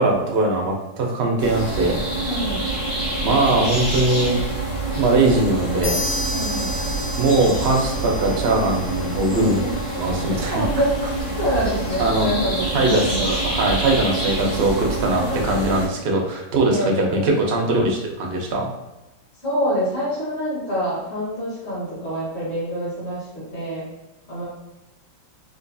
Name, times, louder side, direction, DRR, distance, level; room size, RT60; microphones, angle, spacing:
voice 1, 0.0-2.0 3.2-4.4 5.0-6.0 7.2-9.6 10.0-10.6 12.0-12.3 12.7-18.7, right 2 dB, 70° right, 0 dB, 0.5 m, -21 dB
sound 1, 1.4-15.9, right 2 dB, 85° left, 2.2 m, -26 dB
voice 2, 2.2-2.7 6.3-6.7 9.2-9.7 10.5-11.0 11.4-13.3 14.2-14.6 15.1-15.4 16.7-17.3 19.4-23.9 24.3-24.4, equal, 40° left, -9 dB, 1.5 m, -26 dB
sound 2, 5.8-9.4, left 2 dB, 60° left, 1.5 m, -31 dB
3.8 x 2.6 x 2.6 m, 1.0 s
omnidirectional pair, 1.8 m